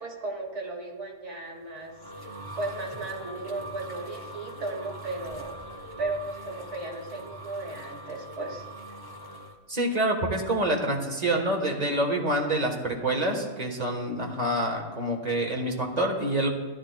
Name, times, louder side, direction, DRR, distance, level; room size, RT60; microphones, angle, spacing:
voice 1, 0.0-5.6 6.0-8.6, right 2 dB, 70° right, 2 dB, 1.7 m, -35 dB
sound 1, 1.6-9.6, right 1 dB, 20° left, 0.8 m, -42 dB
voice 2, 9.7-16.5, right 1 dB, 35° right, 1 dB, 1.2 m, -27 dB
13.0 x 11.0 x 2.2 m, 1.3 s
omnidirectional pair, 1.3 m